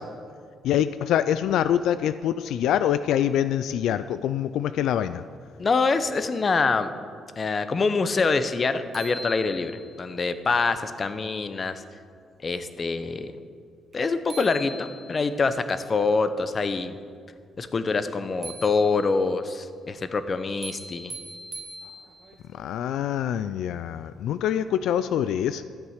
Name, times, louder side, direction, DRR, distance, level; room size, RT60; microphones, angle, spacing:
voice 1, 0.6-5.2 22.5-25.6, left 10 dB, 80° left, 13 dB, 0.3 m, -25 dB
voice 2, 5.6-6.9 7.4-11.8 12.4-13.3 13.9-17.0 17.6-21.1, left 4 dB, 40° left, 11 dB, 0.8 m, -25 dB
sound 1, 8.5-8.6 8.9-10.0 13.9-14.0 14.3-15.4 18.4-19.3 20.6-22.4, right 1 dB, 40° right, 1.6 m, -41 dB
12.5 x 8.2 x 6.5 m, 2.2 s
cardioid pair, 90°, 0 cm